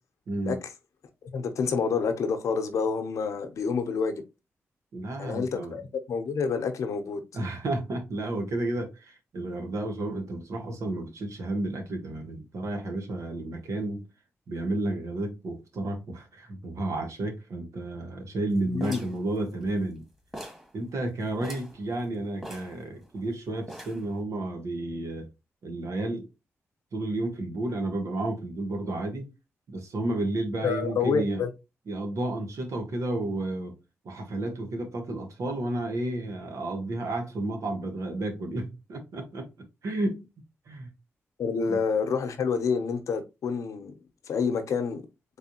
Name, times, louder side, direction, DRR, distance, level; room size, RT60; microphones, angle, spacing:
voice 1, 0.3-0.6 4.9-5.8 7.3-14.0 14.5-20.0 20.7-25.3 25.6-26.3 26.9-29.3 29.7-31.4 31.9-33.7 34.0-39.5 39.8-40.3 40.7-40.9 41.7-41.8, right 2 dB, 75° right, 1.3 m, -32 dB
voice 2, 1.3-4.2 5.2-5.8 6.1-7.2 18.7-19.0 30.6-31.5 41.4-43.9 44.3-45.0, left 5 dB, 80° left, 0.8 m, -28 dB
sound 1, 18.8-20.0 20.3-20.7 21.0-21.1 21.4-21.8 22.4-23.3 23.7-24.1, equal, 10° right, 1.7 m, -42 dB
4.1 x 3.3 x 2.9 m
cardioid pair, 55°, 5 cm